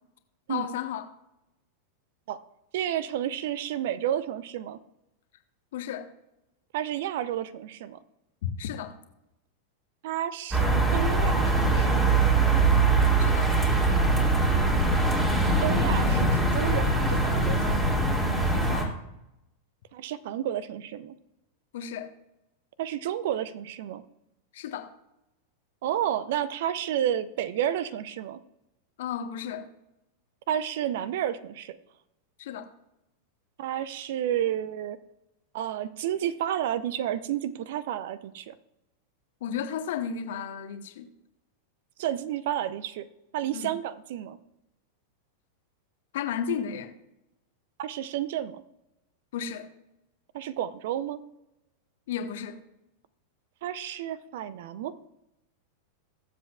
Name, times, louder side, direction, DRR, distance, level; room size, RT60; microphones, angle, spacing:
voice 1, 0.5-1.0 5.7-6.1 8.4-8.9 13.2-13.5 18.5-18.9 21.7-22.1 24.5-24.9 29.0-29.7 32.4-32.7 39.4-41.1 43.5-43.7 46.1-46.9 49.3-49.7 52.1-52.6, left 8 dB, 55° left, 8 dB, 1.0 m, -33 dB
voice 2, 2.7-4.8 6.7-8.0 10.0-12.1 15.6-17.9 19.9-21.1 22.8-24.0 25.8-28.4 30.5-31.8 33.6-35.0 35.5-38.5 42.0-43.0 43.3-44.4 47.8-48.6 50.3-51.2 53.6-54.9, right 11 dB, 55° right, 17 dB, 0.6 m, -31 dB
sound 1, 10.5-18.8, right 3 dB, 15° right, 2.4 m, -22 dB
21.5 x 7.6 x 2.3 m, 0.89 s
figure-of-eight pair, 90°, 0 cm